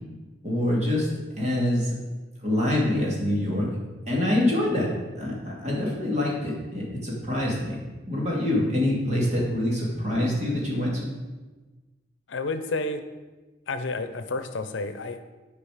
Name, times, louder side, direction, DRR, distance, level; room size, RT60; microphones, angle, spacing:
voice 1, 0.4-1.1 1.4-1.9 2.4-3.7 4.1-4.9 5.2-7.8 8.1-11.1, left 1 dB, 35° right, -4 dB, 2.4 m, -25 dB
voice 2, 12.3-13.0 13.7-15.3, left 3 dB, 85° left, 10 dB, 0.6 m, -30 dB
10.0 x 4.8 x 4.9 m, 1.2 s
head